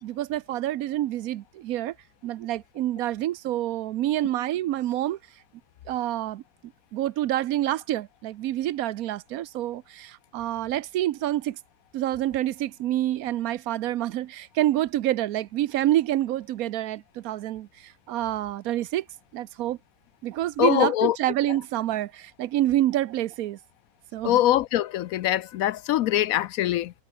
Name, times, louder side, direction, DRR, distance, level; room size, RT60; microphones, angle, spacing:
voice 1, 0.0-1.9 2.2-5.2 5.9-6.4 6.9-11.6 11.9-19.0 19.3-19.8 20.2-23.6 24.1-24.4, right 13 dB, 90° right, 1.1 m, -27 dB
voice 2, 20.6-21.2 24.2-26.9, left 13 dB, 80° left, 1.0 m, -23 dB
omnidirectional pair, 1.5 m